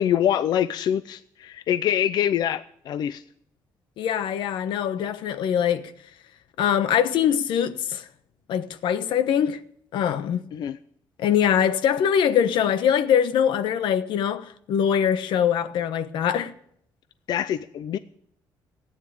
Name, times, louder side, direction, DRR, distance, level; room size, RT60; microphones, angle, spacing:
voice 1, 0.0-3.2 10.5-10.8 17.3-18.0, left 10 dB, 60° left, 0.5 m, -25 dB
voice 2, 4.0-5.9 6.6-8.1 8.5-9.6 9.9-10.4 11.2-16.5, left 9 dB, 90° left, 1.2 m, -23 dB
17.0 x 9.6 x 8.8 m
cardioid pair, 165°, 8 cm